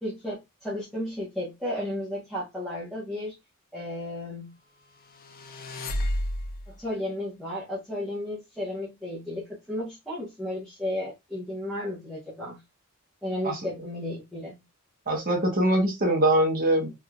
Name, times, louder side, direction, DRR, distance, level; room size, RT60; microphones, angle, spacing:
voice 1, 0.0-3.3 3.7-4.5 6.7-12.6 13.2-14.6, left 1 dB, ahead, 0.9 m, -33 dB
sound 1, 5.0-6.8, left 1 dB, 40° left, 0.5 m, -31 dB
voice 2, 15.1-16.9, right 1 dB, 40° right, 0.9 m, -23 dB
3.3 x 2.7 x 2.2 m
head